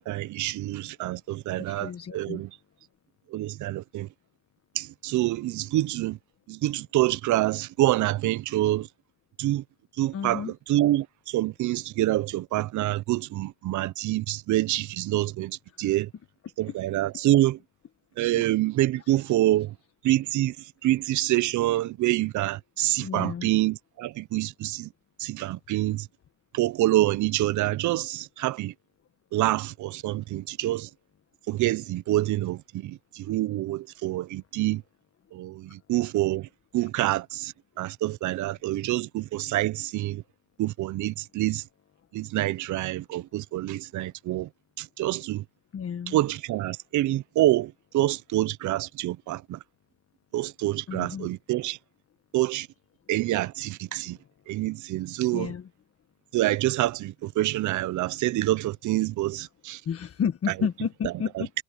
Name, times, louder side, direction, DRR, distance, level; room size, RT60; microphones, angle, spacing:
voice 1, 0.0-2.5 3.3-4.1 4.8-6.2 6.5-8.9 9.4-9.6 10.0-16.1 16.6-17.6 18.2-19.7 20.0-20.6 20.8-24.9 25.2-26.1 26.5-28.7 29.3-30.9 31.5-34.8 35.3-36.5 36.7-40.2 40.6-41.6 42.1-44.5 44.8-45.4 46.1-49.6 50.3-51.8 52.3-52.7 53.1-54.2 54.5-55.5 56.3-59.8, right 15 dB, 75° right, 0.6 m, -26 dB
voice 2, 1.6-2.4 10.1-10.5 16.7-16.8 19.2-19.3 23.0-23.5 45.7-46.2 50.9-51.3 55.3-55.7 59.8-61.5, left 7 dB, 50° left, 1.6 m, -31 dB
cardioid pair, 90°, 30 cm